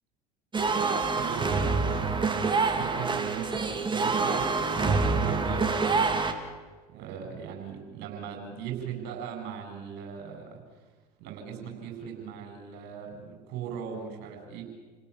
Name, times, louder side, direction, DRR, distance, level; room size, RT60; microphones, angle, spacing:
sound 1, 0.5-6.3, right 4 dB, 25° right, 3.0 m, -26 dB
voice 1, 1.2-6.1 6.9-10.6 11.2-14.6, right 7 dB, 60° right, 4 dB, 7.8 m, -39 dB
30.0 x 18.0 x 8.6 m, 1.3 s
hypercardioid pair, 65°, 20 cm